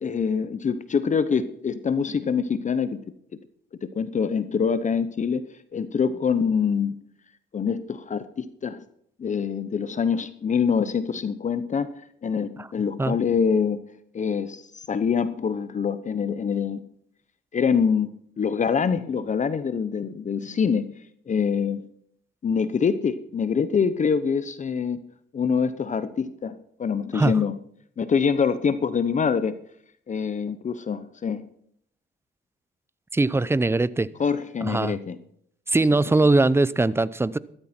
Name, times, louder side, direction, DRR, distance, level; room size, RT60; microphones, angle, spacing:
voice 1, 0.0-3.0 3.8-5.4 5.7-6.9 7.5-8.8 9.2-11.9 12.2-13.8 14.1-16.8 17.5-18.1 18.4-20.8 21.3-21.8 22.4-25.0 25.3-27.6 28.0-29.6 30.1-31.4 34.2-35.2, left 6 dB, 40° left, 13 dB, 0.8 m, -25 dB
voice 2, 33.1-34.1 34.6-35.0 35.7-37.4, right 2 dB, 10° right, 18 dB, 0.6 m, -21 dB
14.5 x 12.5 x 4.4 m, 0.69 s
cardioid pair, 90°, 20 cm